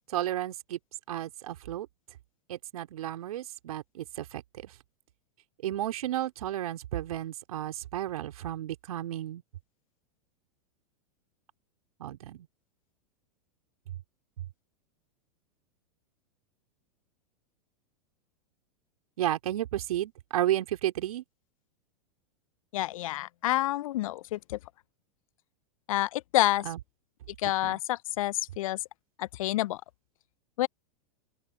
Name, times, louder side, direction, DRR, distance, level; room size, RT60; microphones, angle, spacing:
voice 1, 0.1-0.8 1.1-1.9 2.5-4.7 5.6-9.4 12.0-12.5 19.2-21.2 26.6-26.8 27.6-27.8, right 13 dB, 70° right, 3.2 m, -32 dB
voice 2, 22.7-24.6 25.9-26.6 27.4-28.8 29.2-29.8 30.6-30.7, left 15 dB, 65° left, 0.8 m, -28 dB
open air
hypercardioid pair, 100°, 19 cm